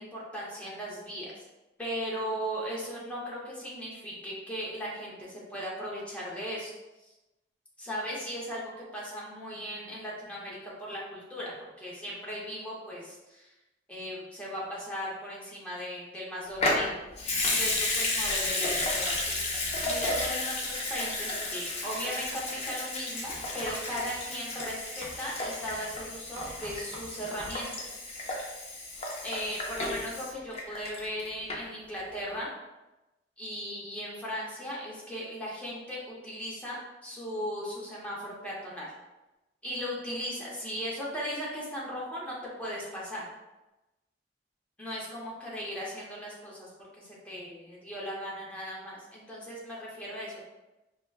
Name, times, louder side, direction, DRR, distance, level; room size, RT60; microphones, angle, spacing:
voice 1, 0.0-1.4 1.8-6.7 7.0-7.1 7.8-8.6 8.9-13.5 13.9-16.9 17.5-19.4 19.8-28.2 29.2-32.5 33.4-38.9 39.6-43.3 44.8-50.5, equal, 5° left, -6 dB, 0.8 m, -37 dB
Water tap faucet / Sink (filling or washing) / Liquid, 16.6-31.2 31.5-31.6, left 2 dB, 35° left, 0.5 m, -32 dB
Writing, 22.3-22.7 23.2-27.6, right 1 dB, 25° right, 0.5 m, -48 dB
4.8 x 2.1 x 2.3 m, 1.0 s
head